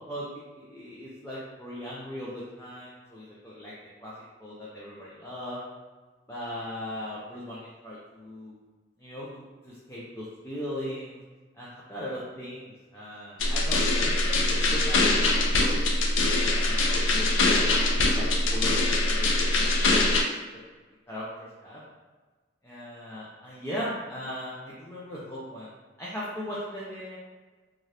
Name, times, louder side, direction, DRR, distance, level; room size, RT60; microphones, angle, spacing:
voice 1, 0.1-3.7 4.0-4.1 4.4-5.6 6.3-8.6 9.0-11.2 11.6-15.8 16.5-20.2 21.1-21.8 22.6-25.7 26.0-27.2, equal, 10° left, -8 dB, 0.4 m, -38 dB
sound 1, 13.4-20.2, left 2 dB, 90° left, 0.4 m, -23 dB
2.7 x 2.4 x 3.2 m, 1.3 s
head